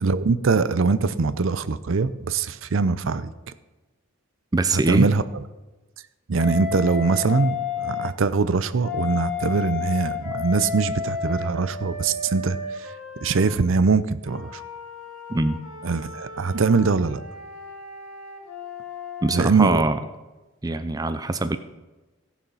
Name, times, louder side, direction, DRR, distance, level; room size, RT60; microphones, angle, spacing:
voice 1, 0.0-3.3 4.7-5.2 6.3-12.9 13.2-14.6 15.8-17.2 19.3-19.8, right 4 dB, 65° right, 15 dB, 0.6 m, -22 dB
voice 2, 4.5-5.1 15.3-15.6 19.2-20.0 20.6-21.6, right 2 dB, 15° right, 10 dB, 0.4 m, -22 dB
Wind instrument woodwind instrument, 6.4-8.1 8.8-13.6 14.3-19.5, left 6 dB, 70° left, 2.6 m, -33 dB
15.5 x 7.2 x 5.5 m, 1.1 s
head